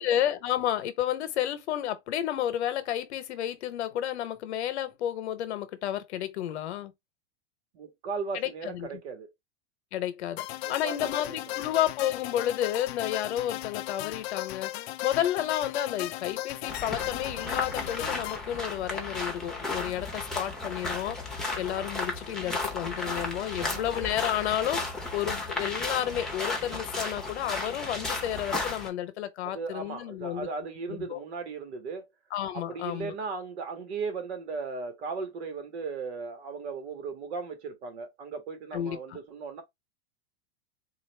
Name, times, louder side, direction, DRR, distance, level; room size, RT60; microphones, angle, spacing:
voice 1, 0.0-6.9 8.3-9.0 9.9-14.7 15.0-21.2 21.6-24.8 25.1-30.5 31.0-31.2 32.3-33.1 38.7-39.2, left 11 dB, 90° left, 0.9 m, -31 dB
voice 2, 7.7-9.3 10.6-11.4 23.0-23.3 23.6-23.8 29.4-32.1 32.5-39.6, right 4 dB, 80° right, 1.6 m, -37 dB
sound 1, 10.4-18.4, left 16 dB, 70° left, 0.5 m, -36 dB
sound 2, 16.7-28.9, left 2 dB, ahead, 0.8 m, -34 dB
3.9 x 2.5 x 3.2 m
supercardioid pair, 150°, 32 cm